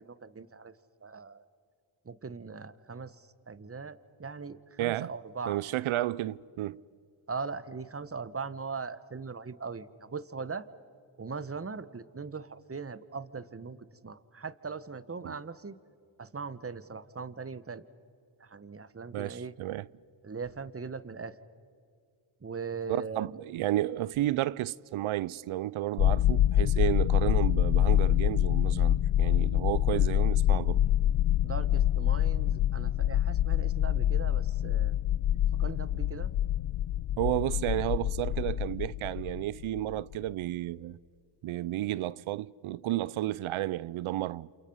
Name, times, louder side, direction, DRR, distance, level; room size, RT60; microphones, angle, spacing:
voice 1, 0.1-0.7 1.0-1.4 2.1-3.1 3.5-5.6 7.3-10.7 11.2-13.8 14.0-15.8 16.2-17.8 18.4-19.5 20.2-21.3 22.4-23.3 31.4-35.0 35.6-36.3, right 5 dB, 30° right, 1.3 m, -40 dB
voice 2, 4.8-5.1 5.5-6.8 15.2-15.3 19.1-19.9 22.9-30.8 37.2-41.0 41.4-44.5, right 15 dB, 85° right, 0.6 m, -32 dB
sound 1, 26.0-40.1, left 12 dB, 60° left, 0.6 m, -26 dB
29.5 x 28.0 x 5.6 m
cardioid pair, 50°, 48 cm